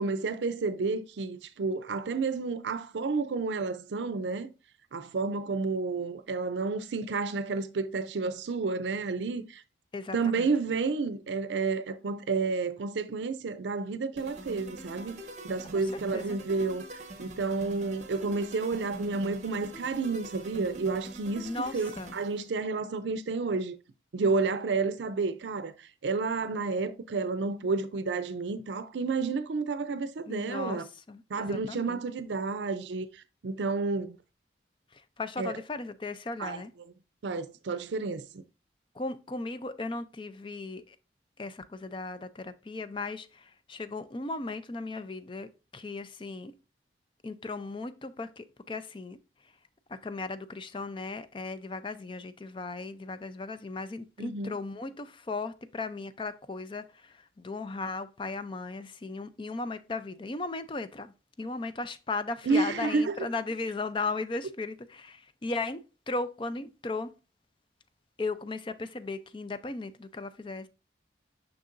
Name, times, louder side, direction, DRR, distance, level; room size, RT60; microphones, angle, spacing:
voice 1, 0.0-4.5 4.9-9.6 10.1-15.2 15.4-16.8 17.2-23.8 24.1-30.8 31.3-34.2 35.4-35.5 36.4-36.6 37.2-38.2 54.2-54.6 62.5-63.1, right 4 dB, 80° right, 0.5 m, -30 dB
voice 2, 9.9-10.5 16.1-16.4 21.4-22.2 30.3-32.0 34.9-36.7 38.9-41.0 41.4-46.5 47.2-49.2 49.9-65.8 66.1-67.1 68.2-70.7, left 3 dB, 30° left, 0.4 m, -36 dB
sound 1, 14.2-22.5, right 1 dB, 40° right, 1.0 m, -44 dB
6.6 x 5.9 x 2.5 m
head